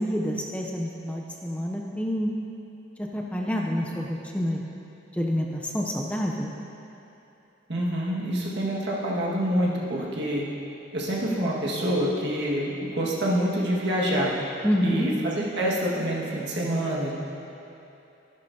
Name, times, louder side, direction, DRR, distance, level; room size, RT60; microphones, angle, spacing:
voice 1, 0.0-2.3 3.0-4.6 5.1-6.5 14.6-15.1, equal, 5° left, -1 dB, 0.5 m, -28 dB
voice 2, 7.7-10.4 10.9-14.3 14.8-17.1, equal, 60° right, -5 dB, 1.7 m, -26 dB
12.5 x 11.0 x 2.7 m, 2.9 s
head